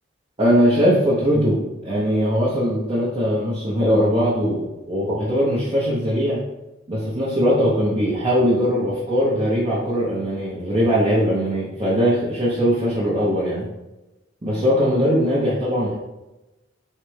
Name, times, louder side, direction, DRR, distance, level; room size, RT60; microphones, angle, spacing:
voice 1, 0.4-6.4 6.9-13.7 14.4-15.9, equal, 25° right, -6 dB, 0.7 m, -20 dB
3.9 x 3.3 x 3.2 m, 1.0 s
head